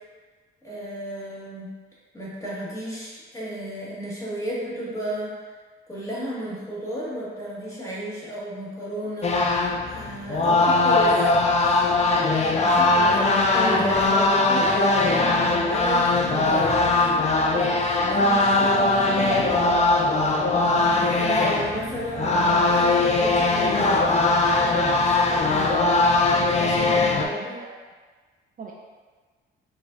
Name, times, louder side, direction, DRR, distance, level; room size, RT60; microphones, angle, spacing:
voice 1, 0.6-1.7 2.1-5.3 5.9-9.3 9.9-11.3 12.6-14.8 15.4-16.8 18.3-18.7 20.7-24.2 26.3-27.6, right 1 dB, 15° left, -8 dB, 1.4 m, -33 dB
sound 1, 9.2-27.3, left 2 dB, 35° left, 0.4 m, -20 dB
voice 2, 18.2-19.8 26.9-27.0 28.6-28.7, right 3 dB, 45° right, -1 dB, 0.4 m, -34 dB
4.8 x 2.6 x 2.4 m, 1.4 s
cardioid pair, 90°, 20 cm